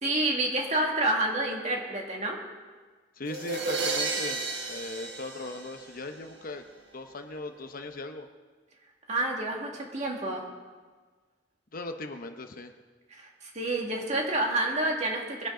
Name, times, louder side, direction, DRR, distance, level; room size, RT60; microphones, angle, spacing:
voice 1, 0.0-2.4 9.1-10.5 13.1-15.5, right 2 dB, 40° right, 0 dB, 2.1 m, -29 dB
voice 2, 3.2-4.4 4.7-6.6 6.9-8.3 11.7-12.7, left 2 dB, 50° left, 6 dB, 0.9 m, -38 dB
sound 1, 3.3-6.2, right 3 dB, 70° right, 1.5 m, -32 dB
22.0 x 10.5 x 3.8 m, 1.4 s
head